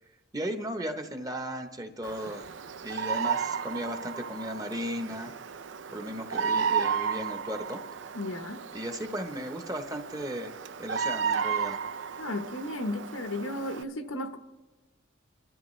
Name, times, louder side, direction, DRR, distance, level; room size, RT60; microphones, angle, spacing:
voice 1, 0.3-2.5 2.8-5.3 5.9-7.8 8.7-11.8, equal, 20° right, 0.9 m, -36 dB
Bird vocalization bird call bird song, 2.0-13.8, right 6 dB, 70° right, 0.5 m, -33 dB
voice 2, 8.1-8.6 12.2-14.4, left 1 dB, 90° left, 1.0 m, -34 dB
28.0 x 12.5 x 3.2 m
head